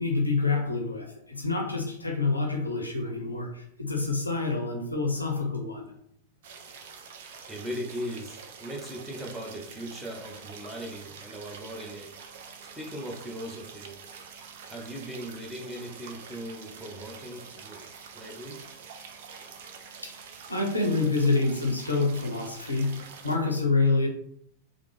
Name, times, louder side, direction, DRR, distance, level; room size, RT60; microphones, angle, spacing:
voice 1, 0.0-5.9 20.0-20.2 20.5-24.1, left 3 dB, 85° left, 2 dB, 0.5 m, -27 dB
sound 1, 6.4-23.4, right 6 dB, 55° right, 0.4 m, -46 dB
voice 2, 7.5-12.1 12.7-14.0 14.7-17.8 18.1-18.6, equal, 5° right, -2 dB, 0.7 m, -39 dB
3.3 x 2.0 x 3.1 m, 0.69 s
figure-of-eight pair, 90°, 0 cm